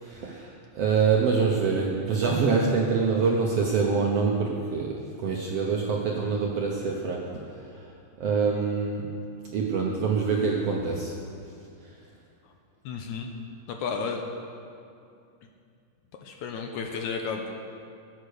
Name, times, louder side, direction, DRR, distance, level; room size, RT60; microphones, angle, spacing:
voice 1, 0.0-7.4 8.2-9.1 9.5-11.2, right 5 dB, 70° right, -1 dB, 1.5 m, -25 dB
voice 2, 12.9-13.3 13.7-14.2 16.2-17.5, left 5 dB, 75° left, 3 dB, 1.9 m, -32 dB
16.5 x 8.2 x 6.7 m, 2.5 s
omnidirectional pair, 4.0 m